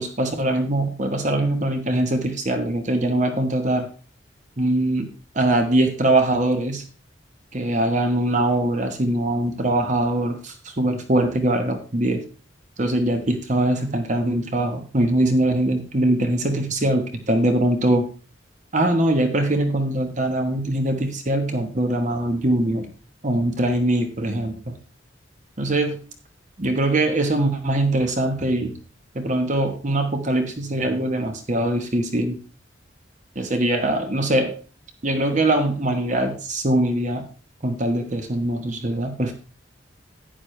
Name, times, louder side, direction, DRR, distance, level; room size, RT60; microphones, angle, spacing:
voice 1, 0.0-3.9 4.6-5.1 5.3-6.8 7.5-12.2 12.8-18.0 18.7-22.9 23.2-24.7 25.6-26.0 26.6-28.8 29.1-32.4 33.4-34.5 35.0-37.2 37.6-39.3, right 1 dB, 40° right, 5 dB, 1.2 m, -22 dB
11.5 x 9.6 x 3.2 m, 0.35 s
head